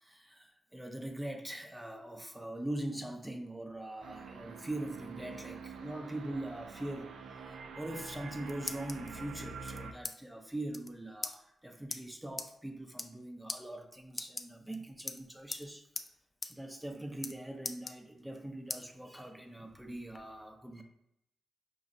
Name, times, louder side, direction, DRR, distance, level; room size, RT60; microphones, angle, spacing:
voice 1, 0.0-15.8 16.4-20.8, right 1 dB, 10° right, 0.7 m, -42 dB
sound 1, 4.0-9.9, right 5 dB, 85° right, 0.3 m, -46 dB
sound 2, 8.4-9.1 9.7-10.2 10.4-10.5 10.7-10.9 11.2-11.4 11.9-12.0 12.4-12.5 12.9-13.2 13.5-13.6 14.1-14.8 15.1-15.7 16.0-16.1 16.4-16.5 16.8-17.3 17.6-18.4 18.7-18.8 19.3-20.2, left 3 dB, 40° left, 0.4 m, -40 dB
5.3 x 2.3 x 2.6 m
supercardioid pair, 50°, 0 cm